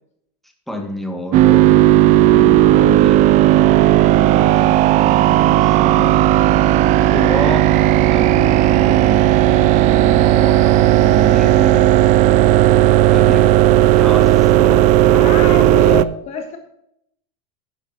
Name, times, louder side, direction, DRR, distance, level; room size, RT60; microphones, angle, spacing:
voice 1, 0.7-1.8 2.1-3.2 4.1-6.2 7.1-7.7 8.1-11.9 12.9-15.6, equal, ahead, 2 dB, 2.0 m, -29 dB
sound 1, 1.3-16.0, right 13 dB, 40° right, 0.5 m, -13 dB
voice 2, 15.1-16.6, left 5 dB, 35° left, 5 dB, 1.5 m, -26 dB
11.0 x 10.5 x 2.9 m, 0.76 s
supercardioid pair, 135°, 20 cm